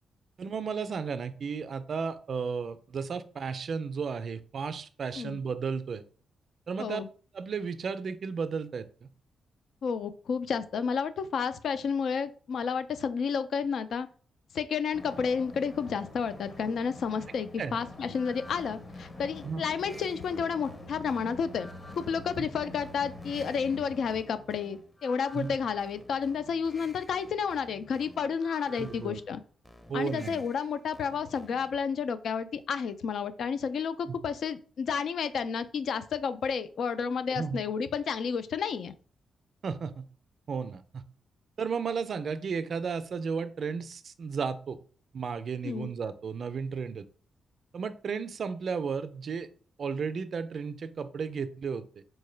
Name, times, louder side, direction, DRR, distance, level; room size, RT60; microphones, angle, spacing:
voice 1, 0.4-6.0 6.7-7.0 7.3-9.1 17.6-17.8 19.4-19.6 22.4-22.5 25.3-25.6 28.8-29.2 29.9-30.4 34.1-34.2 37.3-37.6 39.6-40.0 40.5-41.0 41.6-44.8 45.1-47.1 47.7-49.5 49.8-51.8, right 5 dB, 60° right, 11 dB, 0.4 m, -34 dB
voice 2, 9.8-14.1 14.5-21.7 21.9-29.4 29.9-38.9 45.6-45.9, left 6 dB, 70° left, 12 dB, 0.3 m, -31 dB
sound 1, 14.9-24.2, left 2 dB, 35° left, 0.9 m, -46 dB
sound 2, 18.1-31.9, left 1 dB, 15° left, 0.6 m, -53 dB
4.5 x 2.1 x 3.2 m, 0.41 s
cardioid pair, 80°, 0 cm